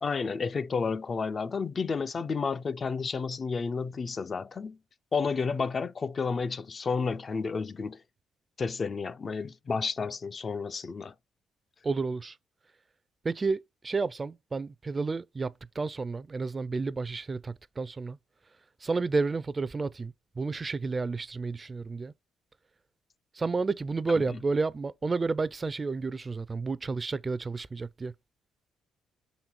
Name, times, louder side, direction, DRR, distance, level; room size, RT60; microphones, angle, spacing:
voice 1, 0.0-4.8 5.1-8.0 8.6-11.1 24.1-24.4, left 5 dB, 40° left, 0.4 m, -31 dB
voice 2, 11.8-12.3 13.2-18.2 18.8-22.1 23.4-28.1, right 4 dB, 30° right, 0.4 m, -31 dB
5.6 x 4.0 x 4.3 m
cardioid pair, 90°, 0 cm